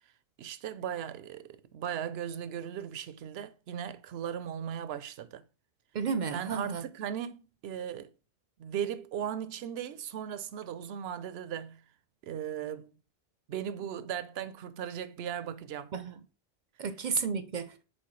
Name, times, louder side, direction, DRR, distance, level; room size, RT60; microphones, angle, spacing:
voice 1, 0.4-5.4 6.3-8.1 8.6-11.8 12.2-12.9 13.5-15.9, right 9 dB, 85° right, 0.8 m, -37 dB
voice 2, 5.9-6.8 15.9-16.2 16.8-17.8, right 6 dB, 55° right, 0.6 m, -32 dB
7.2 x 4.3 x 3.1 m
omnidirectional pair, 1.0 m